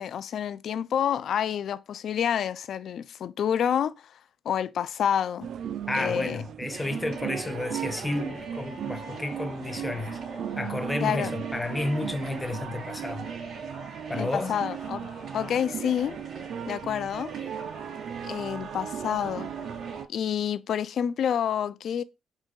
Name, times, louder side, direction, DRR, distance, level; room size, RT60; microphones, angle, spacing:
voice 1, 0.0-3.9 4.5-5.5 5.9-6.4 11.0-11.4 14.2-16.2 16.7-17.3 18.2-19.5 20.1-22.0, left 9 dB, 65° left, 0.3 m, -28 dB
sound 1, 5.4-20.1, right 9 dB, 70° right, 0.3 m, -37 dB
voice 2, 5.9-13.3 14.1-14.5, left 2 dB, 15° left, 0.7 m, -31 dB
sound 2, 6.7-20.0, right 2 dB, 50° right, 3.0 m, -42 dB
4.9 x 2.7 x 3.8 m
cardioid pair, 90°, 0 cm